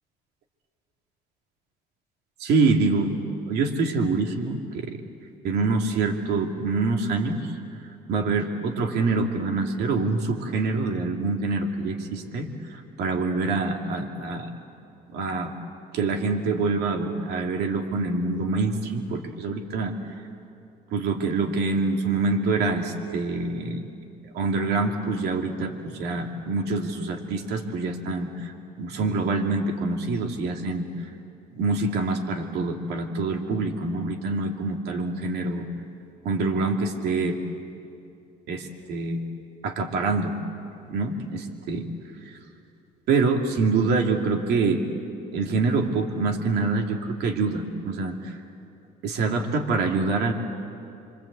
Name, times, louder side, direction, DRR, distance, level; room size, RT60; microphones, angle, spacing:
voice 1, 2.4-5.0 5.4-7.5 8.1-14.5 15.1-15.5 15.9-20.2 20.9-23.8 24.3-31.1 31.5-35.7 36.2-37.4 38.5-39.2 39.6-40.3 40.9-41.9 42.2-42.4 43.1-44.8 45.3-48.4 49.0-50.3, right 3 dB, 75° right, 3 dB, 2.6 m, -26 dB
27.5 x 24.5 x 8.2 m, 2.5 s
cardioid pair, 110°, 17 cm